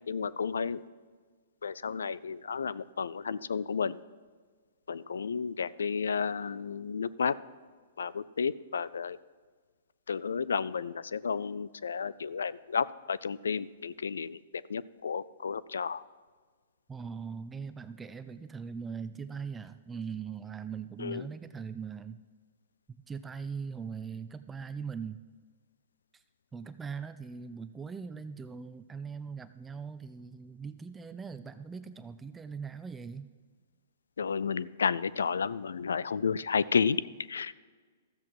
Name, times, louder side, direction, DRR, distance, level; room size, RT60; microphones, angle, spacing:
voice 1, 0.1-0.8 1.6-4.0 4.9-7.3 8.0-9.2 10.1-14.4 14.7-16.0 21.0-21.3 34.2-37.0 37.3-37.5, left 6 dB, 90° left, 19 dB, 0.3 m, -32 dB
voice 2, 16.9-22.2 22.9-25.2 26.1-26.2 26.5-33.3, right 6 dB, 15° right, 12 dB, 0.3 m, -40 dB
13.5 x 7.6 x 4.7 m, 1.5 s
hypercardioid pair, 135°, 0 cm